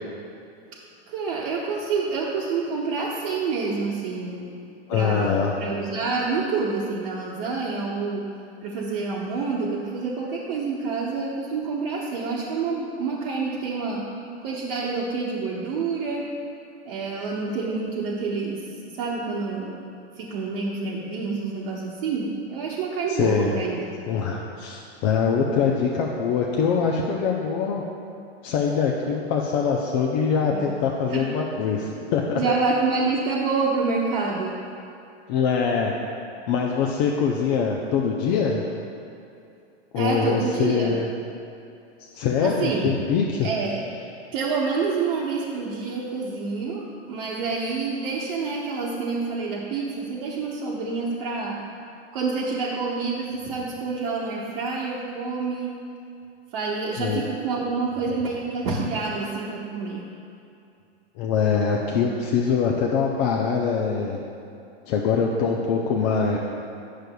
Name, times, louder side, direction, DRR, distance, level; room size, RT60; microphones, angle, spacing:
voice 1, 1.1-4.5 4.9-8.3 8.6-14.1 14.4-16.3 16.8-18.6 18.9-19.8 20.2-23.8 30.5-30.6 31.1-31.2 32.3-34.6 39.9-41.0 42.4-42.9 43.4-43.8 44.3-51.6 52.1-55.7 56.5-60.1, right 4 dB, 55° right, -6 dB, 1.0 m, -27 dB
voice 2, 4.9-5.5 23.1-23.6 24.1-27.8 28.4-32.4 35.3-35.9 36.5-38.6 39.9-41.0 42.1-43.5 57.0-57.2 61.2-64.2 64.9-66.4, left 6 dB, 35° left, -1 dB, 0.5 m, -23 dB
8.9 x 6.6 x 2.3 m, 2.6 s
hypercardioid pair, 130°, 33 cm